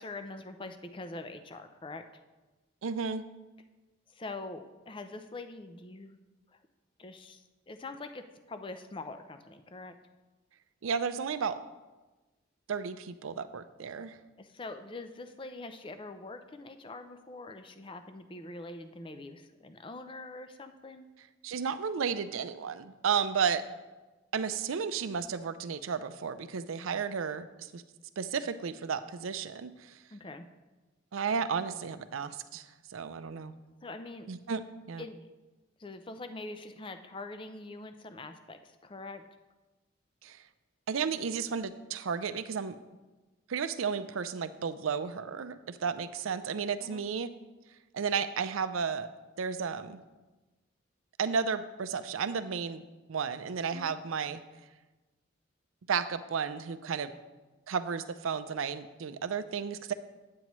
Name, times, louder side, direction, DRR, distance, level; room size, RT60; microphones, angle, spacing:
voice 1, 0.0-2.1 4.1-6.2 6.5-6.6 7.0-9.9 14.4-21.1 30.1-30.5 33.8-34.3 35.0-35.3 35.8-39.2 46.8-47.0 53.7-53.9, left 2 dB, 25° left, 9 dB, 0.4 m, -44 dB
voice 2, 2.8-3.2 10.8-11.6 12.7-14.2 21.4-23.6 24.3-27.8 28.2-30.0 31.1-33.5 34.3-35.0 40.2-40.4 40.9-42.8 43.5-47.3 47.9-49.1 49.4-50.0 51.2-54.4 55.9-57.1 57.7-59.9, right 6 dB, 90° right, 12 dB, 0.5 m, -33 dB
9.3 x 8.5 x 3.1 m, 1.2 s
head